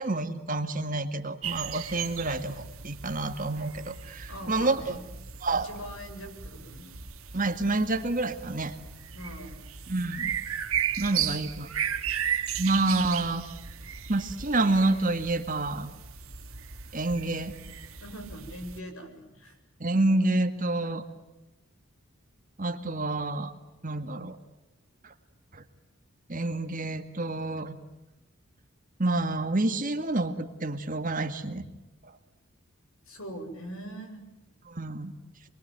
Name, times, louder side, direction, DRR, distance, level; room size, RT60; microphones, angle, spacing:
voice 1, 0.0-4.9 5.4-5.7 7.3-8.7 9.9-10.3 11.0-11.7 12.6-13.4 14.1-15.9 16.9-17.5 19.8-21.0 22.6-23.5 23.8-24.4 25.0-25.1 25.5-25.6 26.3-27.8 29.0-31.7 34.7-35.1, right 2 dB, 40° right, 8 dB, 2.0 m, -28 dB
sound 1, 1.4-18.8, right 8 dB, 80° right, 2.1 m, -36 dB
voice 2, 4.3-5.0 5.5-6.9 9.1-9.6 11.1-11.3 18.0-19.6 33.1-34.2, equal, 75° left, 6 dB, 7.4 m, -42 dB
28.0 x 22.5 x 9.2 m, 0.98 s
head